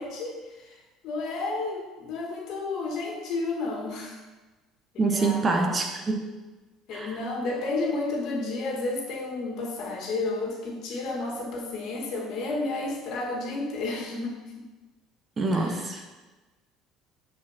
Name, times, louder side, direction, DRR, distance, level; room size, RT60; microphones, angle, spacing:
voice 1, 0.0-4.2 5.1-5.4 6.9-14.4 15.5-15.8, left 3 dB, 65° left, -1 dB, 1.6 m, -31 dB
voice 2, 5.0-6.3 6.9-7.1 15.4-16.0, right 3 dB, 30° right, 3 dB, 1.0 m, -26 dB
11.0 x 4.5 x 2.8 m, 1.2 s
supercardioid pair, 85°, 0 cm